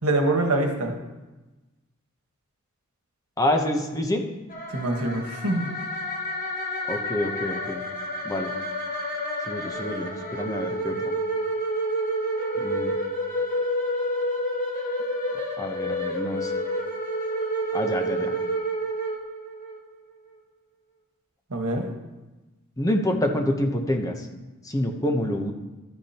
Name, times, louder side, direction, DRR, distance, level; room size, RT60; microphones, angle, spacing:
voice 1, 0.0-0.9 4.7-5.7 21.5-21.9, right 2 dB, 90° right, 3 dB, 1.4 m, -24 dB
voice 2, 3.4-4.2 6.9-7.8 8.2-8.5 9.5-11.0 12.6-12.9 15.6-16.5 17.7-18.4 22.8-24.3 24.6-25.5, left 1 dB, 15° left, 3 dB, 0.8 m, -27 dB
sound 1, 4.5-19.8, equal, 40° left, 1.3 m, -29 dB
12.5 x 8.4 x 2.9 m, 1.1 s
head